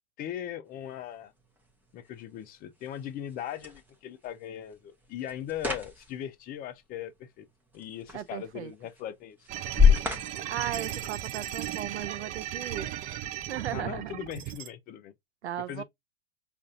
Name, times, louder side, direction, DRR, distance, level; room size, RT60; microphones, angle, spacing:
voice 1, 0.2-1.3 1.9-7.5 7.7-9.4 13.7-15.1 15.7-15.8, left 10 dB, 25° left, 0.5 m, -39 dB
sound 1, 0.7-11.6, left 6 dB, 5° right, 0.9 m, -31 dB
voice 2, 8.1-8.7 10.5-12.9 13.5-14.1 15.4-15.8, right 11 dB, 80° right, 0.6 m, -36 dB
sound 2, 9.5-14.7, right 12 dB, 25° right, 0.4 m, -36 dB
5.1 x 2.5 x 2.5 m
hypercardioid pair, 105°, 33 cm